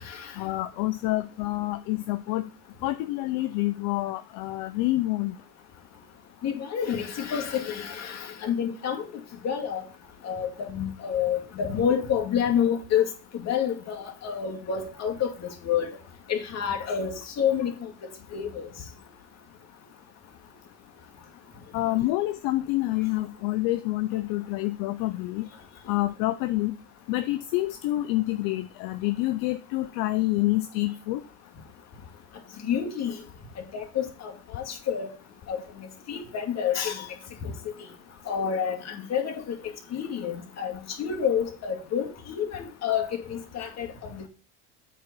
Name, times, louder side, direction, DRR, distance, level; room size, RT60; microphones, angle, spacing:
voice 1, 0.4-2.4 2.8-5.3 21.7-25.5 25.9-26.8 27.1-31.2, left 17 dB, 65° left, 0.7 m, -27 dB
voice 2, 6.4-9.1 9.4-9.8 10.2-13.1 13.3-16.0 16.3-18.7 32.6-33.1 33.6-35.1 35.5-37.1 37.4-37.5 38.3-39.5 39.9-44.3, left 8 dB, 45° left, 2.3 m, -29 dB
8.7 x 4.0 x 6.9 m
supercardioid pair, 105°, 37 cm